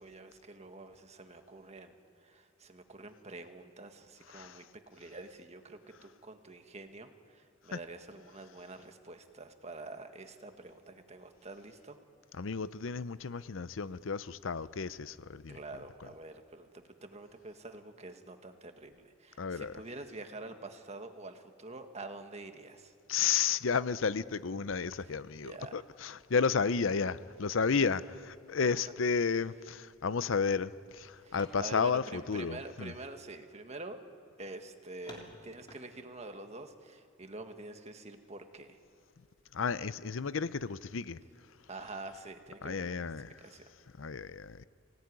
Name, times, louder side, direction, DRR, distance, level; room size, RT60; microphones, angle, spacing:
voice 1, 0.0-1.9 2.2-12.0 15.5-22.9 25.0-25.8 31.2-34.0 34.4-38.8 41.7-43.0 43.2-43.7, right 2 dB, 35° right, 6 dB, 1.6 m, -47 dB
voice 2, 12.4-15.6 19.4-19.7 23.1-32.9 39.5-41.2 42.6-43.4 44.0-44.7, left 5 dB, 75° left, 16 dB, 0.6 m, -32 dB
sound 1, 31.3-32.8 33.5-33.6 34.1-34.2 35.0-36.5, left 1 dB, 25° left, 3.4 m, -54 dB
24.0 x 18.0 x 9.7 m, 2.5 s
head